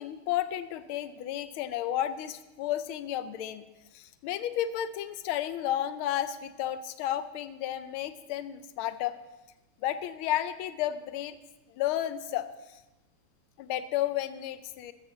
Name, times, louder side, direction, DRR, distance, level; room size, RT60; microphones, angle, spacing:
voice 1, 0.0-3.6 3.9-9.2 9.8-11.4 11.7-12.8 13.6-14.9, left 12 dB, 90° left, 12 dB, 1.5 m, -32 dB
15.0 x 13.5 x 3.9 m, 1.0 s
omnidirectional pair, 2.2 m